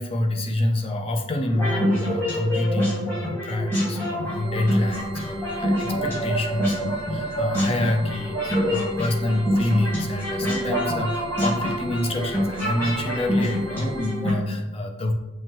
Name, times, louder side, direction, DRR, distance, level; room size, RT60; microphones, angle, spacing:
voice 1, 0.0-15.1, left 1 dB, 25° left, 4 dB, 0.4 m, -27 dB
sound 1, 1.5-14.3, equal, 10° left, 1.3 m, -26 dB
sound 2, 4.2-14.2, right 1 dB, 85° right, 0.5 m, -43 dB
5.6 x 2.2 x 3.0 m, 1.1 s
head